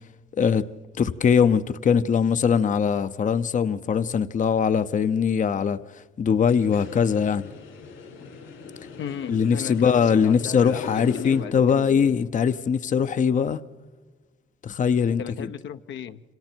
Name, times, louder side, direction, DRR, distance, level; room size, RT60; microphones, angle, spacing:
voice 1, 0.3-0.7 1.0-7.5 9.3-13.6 14.6-15.5, left 6 dB, 40° left, 0.7 m, -22 dB
sound 1, 6.3-11.4, left 4 dB, 85° left, 6.5 m, -40 dB
voice 2, 9.0-12.2 15.2-16.2, left 9 dB, 70° left, 0.8 m, -36 dB
28.0 x 26.0 x 4.5 m
cardioid pair, 90°, 20 cm